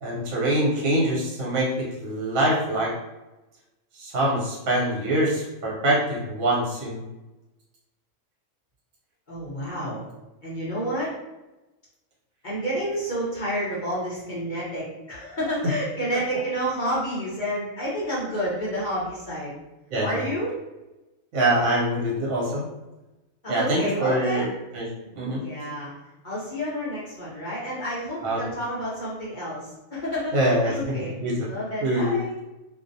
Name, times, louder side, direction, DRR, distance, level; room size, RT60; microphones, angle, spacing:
voice 1, 0.0-2.9 4.0-7.0 15.6-15.7 19.9-20.2 21.3-22.7 23.5-24.5 24.7-24.9 25.1-25.4 28.2-28.4 30.3-31.5 31.8-32.2, right 1 dB, 75° right, -5 dB, 1.1 m, -24 dB
voice 2, 9.3-10.0 10.4-11.1 12.4-19.6 20.0-20.5 23.4-24.6 25.4-25.9 26.2-32.4, equal, 45° left, -8 dB, 0.7 m, -30 dB
2.6 x 2.0 x 2.6 m, 1.0 s
omnidirectional pair, 1.5 m